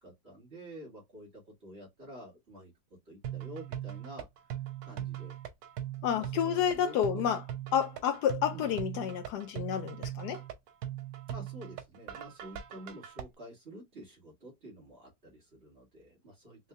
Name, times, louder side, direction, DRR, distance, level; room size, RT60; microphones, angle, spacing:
voice 1, 0.0-2.7 3.1-4.3 4.8-5.4 6.1-7.4 8.5-8.7 11.3-16.7, right 1 dB, 35° right, 2.3 m, -49 dB
sound 1, 3.2-13.2, right 11 dB, 90° right, 1.5 m, -40 dB
voice 2, 6.0-7.4 7.7-10.4, left 9 dB, 75° left, 1.1 m, -30 dB
4.5 x 3.1 x 2.3 m
omnidirectional pair, 1.9 m